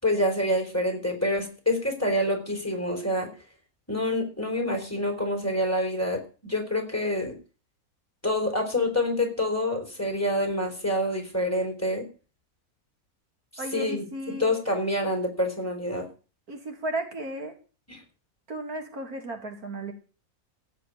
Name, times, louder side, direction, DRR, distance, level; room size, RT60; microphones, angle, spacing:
voice 1, 0.0-3.3 3.9-7.3 8.2-12.1 13.7-16.1 17.9-18.0, left 1 dB, 10° left, 3 dB, 4.1 m, -27 dB
voice 2, 13.6-14.5 16.5-17.5 18.5-19.9, right 1 dB, 80° right, 4 dB, 3.0 m, -34 dB
15.5 x 5.6 x 9.3 m, 0.36 s
omnidirectional pair, 1.5 m